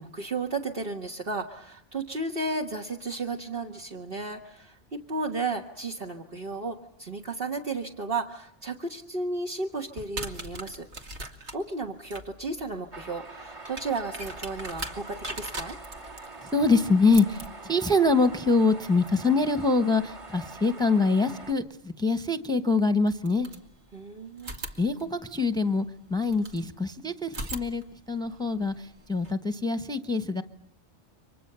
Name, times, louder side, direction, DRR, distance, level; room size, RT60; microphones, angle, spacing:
voice 1, 0.0-10.9 11.5-15.8 23.9-24.5, right 3 dB, 55° right, 1 dB, 1.8 m, -33 dB
sound 1, 9.9-20.7 22.2-22.3 23.0-24.0 24.4-26.7 27.2-29.3, right 2 dB, 70° right, 2.5 m, -42 dB
sound 2, 12.9-21.5, right 3 dB, 35° right, 1.8 m, -44 dB
voice 2, 16.5-23.5 24.8-27.8 28.1-30.4, left 3 dB, 5° left, 11 dB, 1.1 m, -24 dB
29.0 x 24.5 x 6.8 m, 0.68 s
omnidirectional pair, 1.2 m